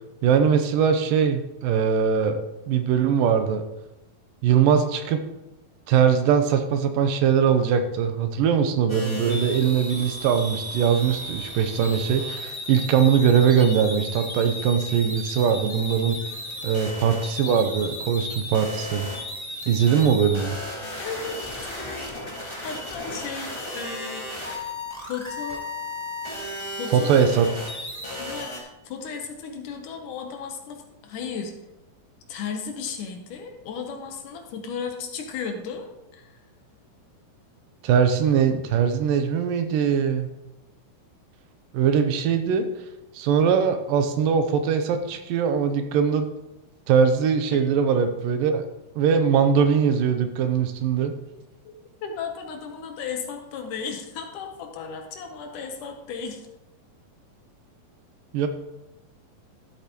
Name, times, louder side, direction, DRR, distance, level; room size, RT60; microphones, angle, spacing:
voice 1, 0.2-2.4 2.7-3.6 4.4-5.2 5.9-16.2 16.6-19.1 19.7-20.6 26.9-27.5 37.8-40.3 41.7-42.7 43.1-46.3 46.9-48.6 49.0-51.1 58.3-58.5, right 7 dB, 80° right, 8 dB, 2.4 m, -21 dB
sound 1, 8.9-28.6, left 1 dB, 30° left, 0.5 m, -35 dB
voice 2, 21.0-22.1 22.6-24.7 25.1-25.6 26.7-27.2 28.2-31.5 32.3-36.4 47.5-47.6 51.7-51.8 52.0-56.5, left 6 dB, 70° left, 3 dB, 2.4 m, -35 dB
13.0 x 8.4 x 3.0 m, 0.97 s
omnidirectional pair, 4.0 m